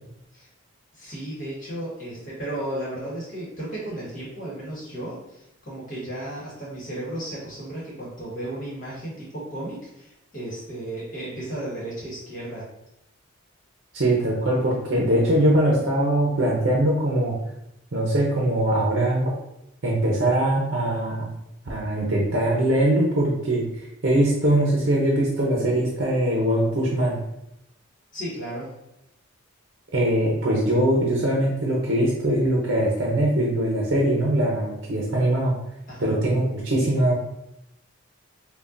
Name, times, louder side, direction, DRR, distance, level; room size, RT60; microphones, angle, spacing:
voice 1, 0.9-12.6 28.1-28.7 35.9-36.1, right 1 dB, 40° left, -6 dB, 1.4 m, -34 dB
voice 2, 13.9-17.4 17.9-19.3 19.8-21.3 21.7-23.7 24.0-27.2 29.9-35.5 36.0-37.2, right 1 dB, 55° right, -3 dB, 0.7 m, -22 dB
5.4 x 2.3 x 2.5 m, 0.85 s
head